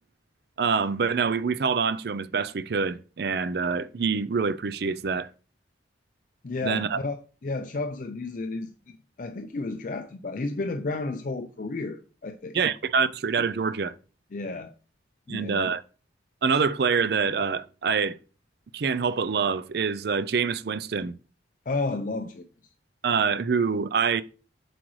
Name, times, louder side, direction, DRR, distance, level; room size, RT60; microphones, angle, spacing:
voice 1, 0.6-5.3 6.6-7.0 12.5-13.9 15.3-15.8 16.4-18.2 18.7-21.1 23.0-24.2, right 5 dB, 55° right, 0.4 m, -25 dB
voice 2, 6.4-7.2 7.4-8.7 9.2-12.6 14.3-14.7 15.3-15.7 21.7-22.5, left 3 dB, 45° left, 0.4 m, -32 dB
7.7 x 4.9 x 3.1 m
head